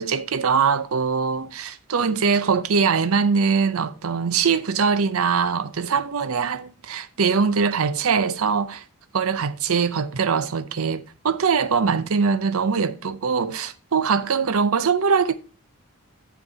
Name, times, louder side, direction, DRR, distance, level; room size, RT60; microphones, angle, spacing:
voice 1, 0.0-8.8 9.1-15.4, right 5 dB, 70° right, 0.6 m, -22 dB
7.2 x 5.2 x 4.6 m
head